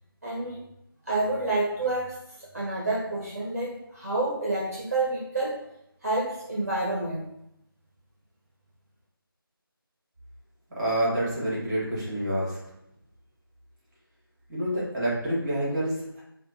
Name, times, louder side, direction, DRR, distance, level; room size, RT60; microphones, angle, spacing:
voice 1, 0.2-0.6 1.1-5.6 6.0-7.3, right 2 dB, 40° right, -3 dB, 0.6 m, -29 dB
voice 2, 10.8-12.6 14.5-16.2, right 1 dB, 10° right, -7 dB, 1.1 m, -28 dB
4.2 x 2.2 x 2.6 m, 0.80 s
figure-of-eight pair, 170°, 13 cm